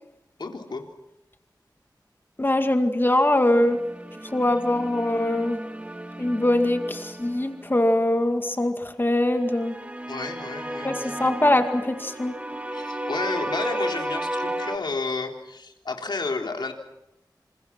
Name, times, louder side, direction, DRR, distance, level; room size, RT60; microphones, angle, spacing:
voice 1, 0.4-0.9 10.1-11.3 12.7-16.7, left 3 dB, 75° left, 2 dB, 3.7 m, -31 dB
voice 2, 2.4-3.8 4.3-5.6 6.2-9.8 10.8-12.3, left 1 dB, 30° left, 6 dB, 2.2 m, -22 dB
sound 1, 3.5-7.9 9.3-14.8, right 1 dB, 15° right, 2.3 m, -33 dB
28.5 x 27.0 x 6.0 m, 0.88 s
wide cardioid pair, 80°, 8 cm